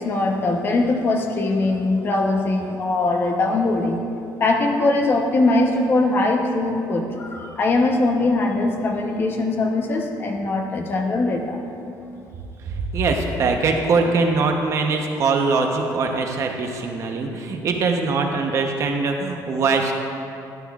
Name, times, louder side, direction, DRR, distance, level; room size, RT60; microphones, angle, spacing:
voice 1, 0.0-4.0 4.4-11.6, left 2 dB, 30° left, 2 dB, 0.9 m, -21 dB
voice 2, 12.7-19.9, right 4 dB, 45° right, 3 dB, 0.9 m, -22 dB
12.5 x 11.5 x 2.4 m, 2.8 s
cardioid pair, 175°, 7 cm